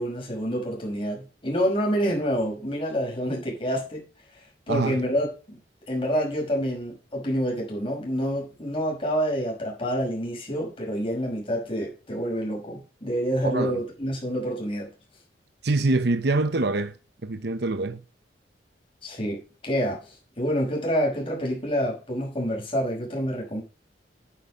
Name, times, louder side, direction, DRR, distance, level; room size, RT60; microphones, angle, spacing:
voice 1, 0.0-4.0 4.7-5.6 5.9-14.9 19.0-20.0 20.4-23.6, equal, 30° left, 5.7 m, -27 dB
voice 2, 4.7-5.0 13.4-13.8 15.6-16.9 17.2-18.0, right 2 dB, 65° right, 0.8 m, -25 dB
10.0 x 9.5 x 5.1 m
head